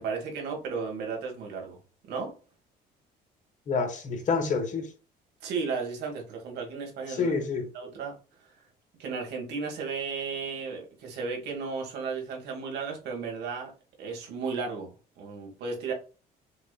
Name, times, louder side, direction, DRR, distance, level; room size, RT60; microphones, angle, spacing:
voice 1, 0.0-1.8 2.1-2.3 5.4-7.3 7.7-8.1 9.0-13.7 14.0-14.9 15.2-15.9, right 5 dB, 80° right, 1.8 m, -34 dB
voice 2, 3.7-4.9 7.1-7.7, left 4 dB, 45° left, 1.2 m, -28 dB
5.9 x 2.6 x 2.4 m
cardioid pair, 110°, 17 cm